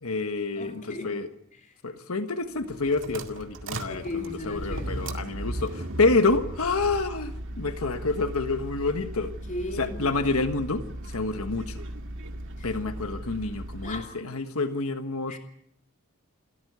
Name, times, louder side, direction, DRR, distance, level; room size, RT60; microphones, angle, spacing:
voice 1, 0.0-1.3 1.8-9.3 9.8-11.8 12.6-15.4, left 3 dB, 75° left, 8 dB, 1.4 m, -28 dB
voice 2, 0.6-1.2 1.7-1.8 3.9-5.1 9.5-10.1 12.6-12.7 13.8-14.2 15.3-15.4, left 2 dB, 35° left, 3 dB, 2.9 m, -36 dB
sound 1, 2.6-14.1, right 1 dB, 65° right, 2.1 m, -37 dB
28.5 x 13.5 x 8.1 m, 0.75 s
head